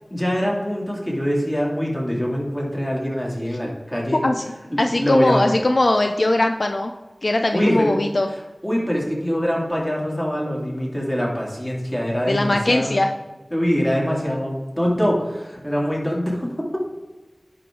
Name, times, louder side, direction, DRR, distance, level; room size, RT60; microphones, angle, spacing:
voice 1, 0.1-4.2 4.7-5.4 7.5-7.9 8.6-13.0 13.5-16.8, equal, 15° left, -3 dB, 2.8 m, -23 dB
voice 2, 4.1-4.5 4.8-6.9 7.2-8.3 12.3-13.1, left 2 dB, 65° left, 5 dB, 0.5 m, -20 dB
10.5 x 5.1 x 3.8 m, 1.2 s
wide cardioid pair, 50°, 0 cm